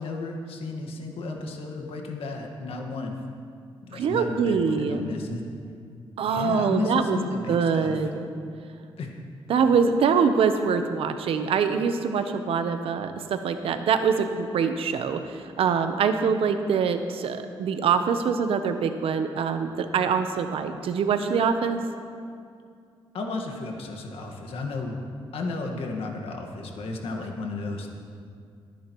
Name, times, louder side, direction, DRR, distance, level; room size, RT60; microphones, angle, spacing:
voice 1, 0.0-3.1 3.9-5.4 6.2-8.1 9.0-9.1 23.1-25.0 25.3-27.9, left 3 dB, 80° left, 2 dB, 1.6 m, -33 dB
voice 2, 3.9-5.0 6.2-7.2 7.5-8.3 9.5-21.8, right 6 dB, 80° right, 8 dB, 0.8 m, -24 dB
20.5 x 10.0 x 3.1 m, 2.3 s
cardioid pair, 85°, 10 cm